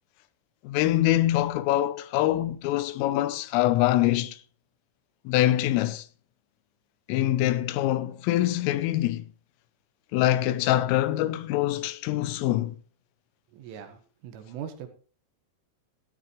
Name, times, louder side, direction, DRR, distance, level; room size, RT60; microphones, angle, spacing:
voice 1, 0.6-4.4 5.3-6.1 7.1-9.3 10.1-12.8, left 14 dB, 85° left, 3.3 m, -24 dB
voice 2, 13.5-14.9, right 9 dB, 75° right, 3.8 m, -40 dB
14.0 x 13.0 x 3.1 m
omnidirectional pair, 5.9 m